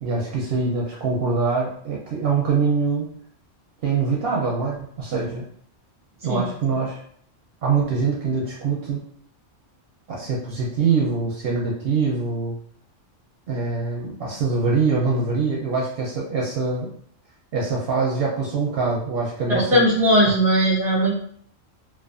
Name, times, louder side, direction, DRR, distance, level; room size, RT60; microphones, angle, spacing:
voice 1, 0.0-3.1 3.8-5.4 6.2-7.0 7.6-9.0 10.1-12.6 13.5-16.9 17.5-19.8, right 4 dB, 65° right, -3 dB, 0.7 m, -24 dB
voice 2, 19.5-21.2, equal, 5° right, -5 dB, 0.5 m, -18 dB
2.4 x 2.3 x 2.4 m, 0.63 s
omnidirectional pair, 1.3 m